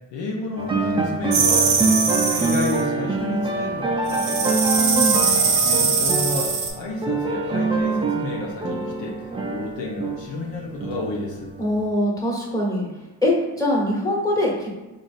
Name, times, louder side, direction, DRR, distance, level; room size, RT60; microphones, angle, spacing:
voice 1, 0.1-4.8 5.4-11.5, left 2 dB, 70° left, -2 dB, 0.7 m, -31 dB
sound 1, 0.6-11.9, right 3 dB, 10° right, 0.4 m, -25 dB
sound 2, 1.3-2.8 4.1-6.7, right 5 dB, 75° right, 0.7 m, -21 dB
voice 2, 4.8-5.4 11.6-12.8 13.2-14.7, left 1 dB, 5° left, -4 dB, 1.3 m, -23 dB
3.8 x 2.6 x 2.5 m, 1.1 s
supercardioid pair, 45°, 46 cm